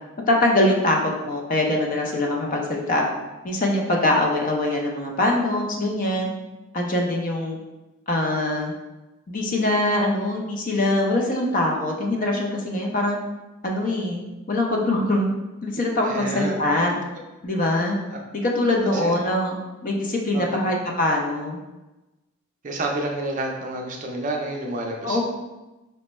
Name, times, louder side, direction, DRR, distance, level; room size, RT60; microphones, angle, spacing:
voice 1, 0.2-1.0 1.2-3.0 3.4-6.3 6.7-7.6 8.1-8.7 9.3-13.2 13.6-14.2 14.5-15.3 15.6-17.0 17.4-18.0 18.4-19.6 19.8-21.6 25.0-25.2, left 1 dB, 40° left, 0 dB, 0.5 m, -23 dB
voice 2, 16.0-16.6 18.9-19.1 20.3-20.6 22.6-25.2, right 2 dB, 40° right, 1 dB, 0.4 m, -29 dB
4.2 x 2.2 x 3.0 m, 1.1 s
head